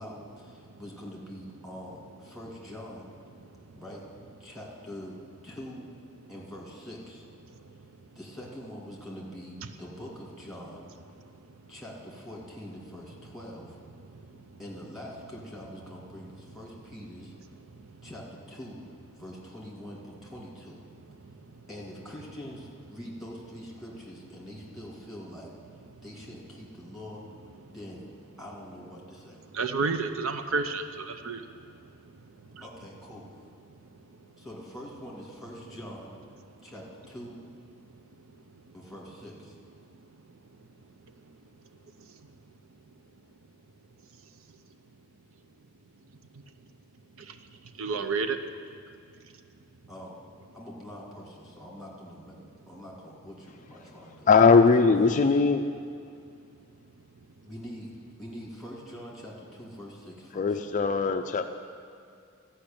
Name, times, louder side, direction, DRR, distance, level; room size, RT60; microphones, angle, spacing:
voice 1, 0.0-3.1 3.7-4.0 4.4-5.2 5.4-5.9 6.3-7.3 8.1-10.9 11.7-13.8 14.6-17.3 18.0-18.8 19.2-20.8 21.7-25.5 26.0-27.2 27.7-28.1 28.4-29.4 32.6-33.3 34.4-36.1 36.6-37.4 38.7-39.6 49.9-50.1 50.5-54.3 54.7-55.4 57.4-57.9 58.2-60.6, equal, ahead, -4 dB, 2.2 m, -44 dB
voice 2, 29.5-31.5 47.2-47.4 47.8-48.4, right 4 dB, 70° right, 8 dB, 0.6 m, -30 dB
voice 3, 54.3-55.6 60.4-61.5, left 4 dB, 35° left, 7 dB, 0.4 m, -20 dB
13.5 x 5.6 x 8.7 m, 2.4 s
head